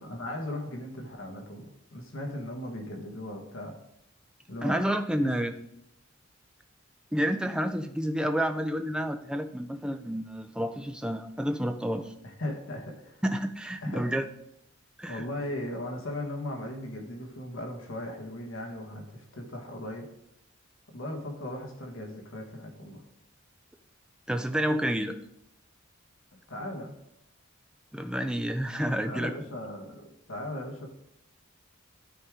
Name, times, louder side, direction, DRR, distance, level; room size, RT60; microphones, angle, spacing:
voice 1, 0.1-1.7 1.9-3.7 4.5-4.8 5.1-5.3 12.4-13.2 13.8-14.1 15.0-20.1 20.9-23.0 26.5-26.9 29.0-30.9, left 1 dB, 65° left, 1 dB, 1.4 m, -37 dB
voice 2, 4.6-5.5 7.1-12.1 13.2-14.3 15.0-15.2 24.3-25.1 27.9-29.3, equal, 5° right, 7 dB, 0.4 m, -29 dB
12.5 x 4.7 x 3.6 m, 0.77 s
head